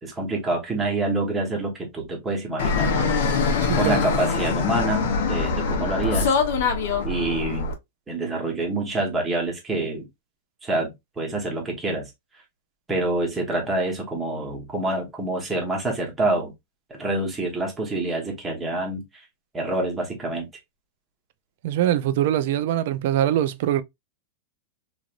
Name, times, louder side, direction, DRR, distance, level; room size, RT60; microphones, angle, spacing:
voice 1, 0.0-3.2 3.8-6.3 7.0-7.7 8.1-10.1 10.6-12.1 12.9-16.5 16.9-19.2 19.5-20.5, right 2 dB, 10° right, 1.0 m, -27 dB
Fixed-wing aircraft airplane, 2.6-7.7, left 5 dB, 65° left, 0.8 m, -23 dB
voice 2, 21.6-23.8, right 11 dB, 55° right, 0.4 m, -22 dB
3.1 x 2.5 x 2.3 m
supercardioid pair, 155°, 0 cm